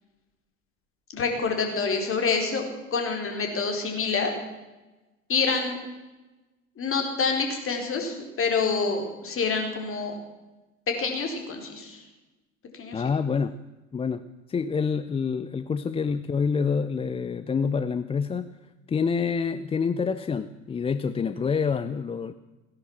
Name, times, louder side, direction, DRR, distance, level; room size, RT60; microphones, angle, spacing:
voice 1, 1.1-4.3 5.3-5.8 6.8-10.2 10.9-12.0 12.8-13.0, left 4 dB, 35° left, 3 dB, 4.2 m, -27 dB
voice 2, 12.9-13.5 13.9-14.2 14.5-18.5 18.9-22.3, left 5 dB, 15° left, 12 dB, 0.5 m, -27 dB
17.5 x 10.5 x 7.3 m, 1.1 s
hypercardioid pair, 75°, 40 cm